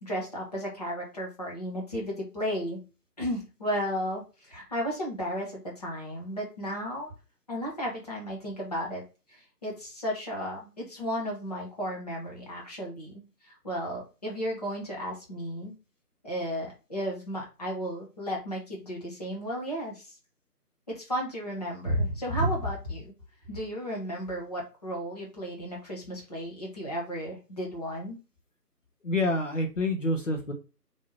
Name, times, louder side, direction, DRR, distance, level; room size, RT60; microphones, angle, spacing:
voice 1, 0.0-2.8 3.2-7.1 7.5-9.0 9.3-13.2 13.6-15.7 16.2-20.1 20.9-23.1 23.5-28.2, equal, 25° left, -2 dB, 1.0 m, -33 dB
voice 2, 29.0-30.5, left 2 dB, 50° left, 2 dB, 0.9 m, -27 dB
4.6 x 2.1 x 4.2 m, 0.30 s
figure-of-eight pair, 155°, 48 cm